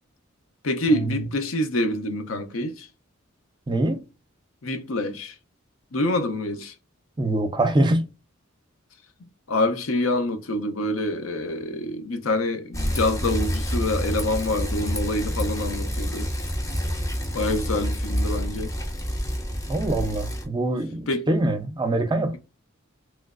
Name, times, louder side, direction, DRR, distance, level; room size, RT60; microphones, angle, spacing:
voice 1, 0.6-2.9 4.6-5.4 5.9-6.7 9.5-16.3 17.3-18.8 21.1-21.3, left 1 dB, 75° left, 0.7 m, -26 dB
voice 2, 3.7-4.0 7.2-8.1 19.7-22.4, right 2 dB, 20° right, 0.5 m, -24 dB
Bicycle, 12.7-20.5, equal, 15° left, 0.6 m, -28 dB
3.2 x 3.0 x 2.4 m
head